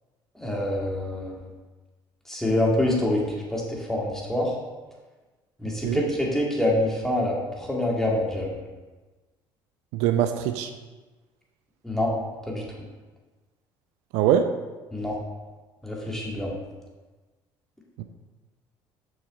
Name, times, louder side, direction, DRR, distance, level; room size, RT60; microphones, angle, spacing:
voice 1, 0.4-1.4 2.3-3.2 3.5-4.5 5.6-8.6 11.8-12.1 12.5-12.6 14.9-15.2 15.8-16.6, left 1 dB, 5° left, -3 dB, 2.2 m, -26 dB
voice 2, 5.7-6.0 9.9-10.7 14.1-14.5 18.0-18.1, right 10 dB, 75° right, 8 dB, 0.5 m, -23 dB
6.3 x 6.2 x 3.8 m, 1.2 s
hypercardioid pair, 70°, 12 cm